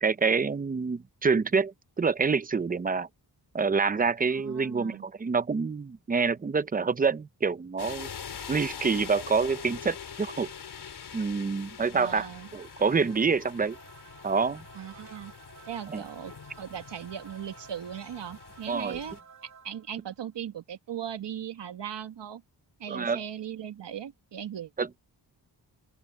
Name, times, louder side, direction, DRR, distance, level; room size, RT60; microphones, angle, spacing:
voice 1, 0.0-3.1 3.5-8.1 8.5-10.5 11.1-13.8 14.2-14.6 15.9-16.0 18.7-19.0 22.9-23.2 24.8-24.9, right 5 dB, 20° right, 0.6 m, -27 dB
voice 2, 4.3-5.1 11.9-12.5 14.7-15.3 15.7-19.2 19.6-22.4 22.8-24.7, right 9 dB, 85° right, 1.9 m, -38 dB
sound 1, 7.8-19.2, left 7 dB, 65° left, 4.0 m, -44 dB
sound 2, 11.9-20.1, right 5 dB, 45° right, 3.0 m, -54 dB
open air
wide cardioid pair, 145°, 42 cm